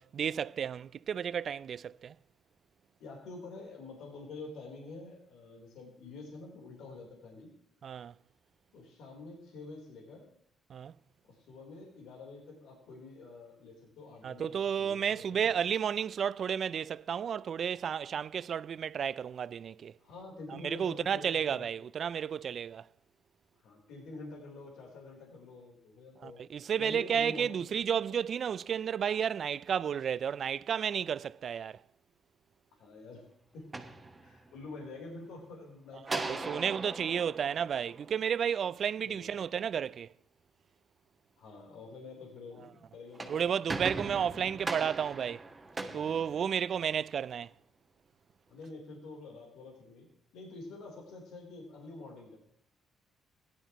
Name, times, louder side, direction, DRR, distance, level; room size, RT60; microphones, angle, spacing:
voice 1, 0.0-2.1 7.8-8.1 10.7-10.9 14.2-19.9 20.6-22.9 26.2-31.8 36.1-40.1 43.3-45.4 45.9-47.5, right 8 dB, 55° right, 0.3 m, -32 dB
voice 2, 3.0-7.5 8.7-10.3 11.2-15.6 20.0-21.7 23.6-26.4 26.8-27.7 32.8-33.2 33.5-33.7 34.2-36.8 39.0-39.3 41.4-44.1 46.4-46.7 48.5-50.1 50.3-52.4, left 3 dB, 85° left, 3.7 m, -47 dB
sound 1, 33.5-34.7 36.0-38.5 42.9-47.0, right 3 dB, 25° right, 1.5 m, -40 dB
16.5 x 11.5 x 3.0 m
cardioid pair, 90°, 0 cm